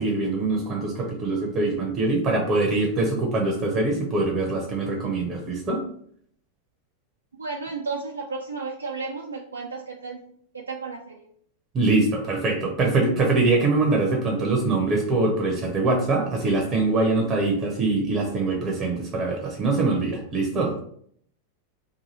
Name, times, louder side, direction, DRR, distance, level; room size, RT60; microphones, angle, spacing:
voice 1, 0.0-5.8 11.7-20.7, right 3 dB, 30° right, 1 dB, 0.7 m, -23 dB
voice 2, 7.4-10.2 10.5-11.3, right 4 dB, 75° right, 0 dB, 0.4 m, -33 dB
2.7 x 2.6 x 4.0 m, 0.64 s
figure-of-eight pair, 90°, 0 cm